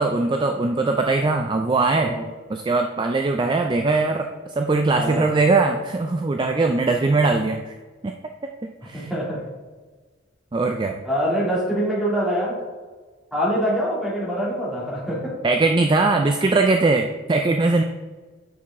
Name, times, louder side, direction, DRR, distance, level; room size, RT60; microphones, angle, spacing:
voice 1, 0.0-2.2 2.5-7.7 8.0-8.1 8.6-9.1 10.5-11.0 15.4-17.8, right 3 dB, 25° right, 5 dB, 0.3 m, -21 dB
voice 2, 4.9-5.3 8.9-9.4 11.0-12.6 13.3-15.4, equal, ahead, -7 dB, 2.4 m, -24 dB
8.6 x 5.8 x 3.6 m, 1.4 s
head